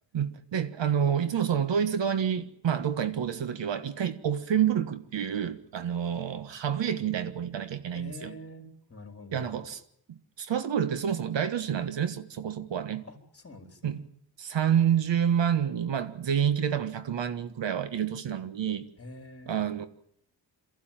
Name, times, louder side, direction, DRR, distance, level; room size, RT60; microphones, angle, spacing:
voice 1, 0.1-8.3 9.3-9.8 10.1-13.1 13.8-14.0 14.4-18.9 19.5-19.9, right 8 dB, 70° right, 1.6 m, -28 dB
voice 2, 7.9-9.4 13.1-14.0 19.0-19.7, left 1 dB, 30° left, 3.9 m, -46 dB
23.0 x 15.0 x 9.1 m
cardioid pair, 90°, 45 cm